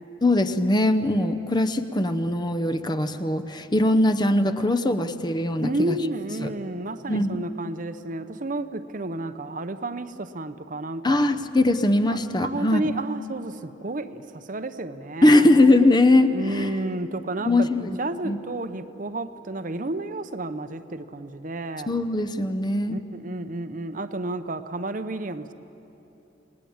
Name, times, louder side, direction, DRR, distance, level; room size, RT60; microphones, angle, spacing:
voice 1, 0.2-5.9 7.1-7.4 11.0-12.8 15.2-16.7 17.5-18.0 18.2-18.4 21.9-23.0, left 1 dB, 25° left, 10 dB, 0.8 m, -21 dB
voice 2, 5.6-11.2 12.1-15.5 16.3-22.0 22.9-25.5, right 2 dB, 45° right, 10 dB, 0.8 m, -31 dB
28.5 x 19.5 x 8.8 m, 3.0 s
head